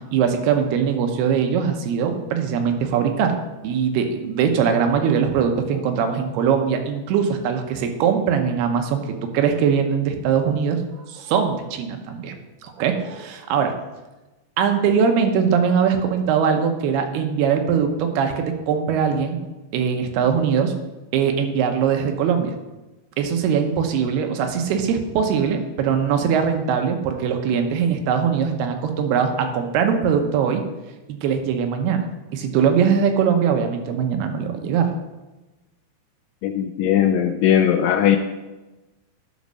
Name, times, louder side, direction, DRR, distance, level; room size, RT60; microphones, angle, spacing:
voice 1, 0.1-3.4 3.6-9.0 9.3-12.4 12.6-13.7 14.6-19.4 19.7-20.7 21.1-22.5 23.2-30.6 31.1-32.1 32.3-34.9, right 7 dB, 85° right, 5 dB, 2.9 m, -21 dB
voice 2, 36.4-38.2, left 9 dB, 85° left, 6 dB, 2.0 m, -18 dB
11.0 x 5.2 x 6.2 m, 1.1 s
omnidirectional pair, 4.5 m